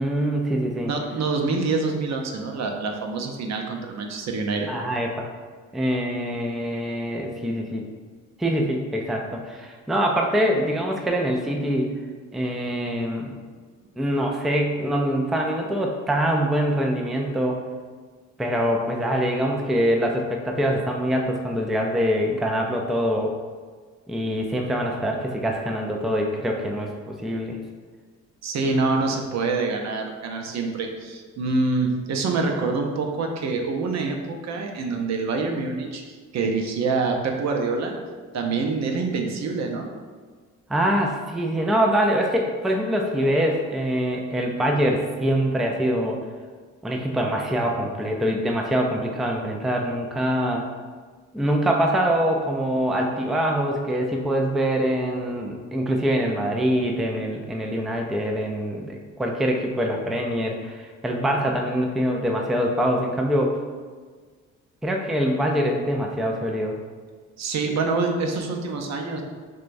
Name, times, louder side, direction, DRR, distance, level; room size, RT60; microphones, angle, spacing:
voice 1, 0.0-0.9 4.7-5.3 5.7-7.9 8.4-11.9 12.3-13.3 14.0-17.6 18.4-23.3 24.1-27.6 28.7-28.9 40.7-46.2 46.8-50.7 51.3-63.6 64.8-66.8, equal, ahead, 1 dB, 0.4 m, -24 dB
voice 2, 0.9-4.7 28.4-38.0 38.3-39.9 67.4-69.2, right 3 dB, 60° right, 2 dB, 0.7 m, -26 dB
6.2 x 2.3 x 2.5 m, 1.5 s
cardioid pair, 90°, 30 cm